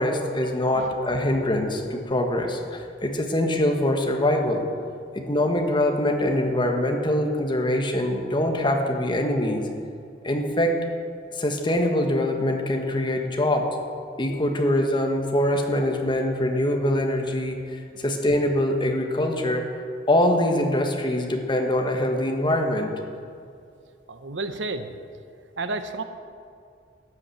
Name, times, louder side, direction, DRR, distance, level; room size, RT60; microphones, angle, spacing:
voice 1, 0.0-4.6 5.1-9.7 10.2-10.8 11.3-13.7 14.2-19.6 20.1-22.9, left 1 dB, 25° left, 3 dB, 1.3 m, -23 dB
voice 2, 24.1-24.9 25.6-26.0, right 3 dB, 85° right, 9 dB, 0.9 m, -31 dB
12.5 x 8.5 x 7.8 m, 2.4 s
head